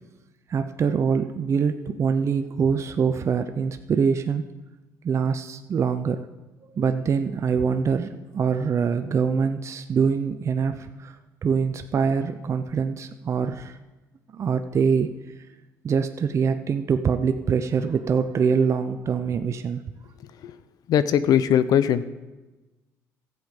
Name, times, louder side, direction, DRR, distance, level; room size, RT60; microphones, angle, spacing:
voice 1, 0.5-4.4 5.0-6.2 6.7-11.2 11.4-13.8 14.3-15.1 15.8-19.8, right 6 dB, 45° right, 8 dB, 0.6 m, -24 dB
voice 2, 20.9-22.0, left 9 dB, 65° left, 14 dB, 0.7 m, -20 dB
13.5 x 7.8 x 5.2 m, 1.1 s
supercardioid pair, 80°, 7 cm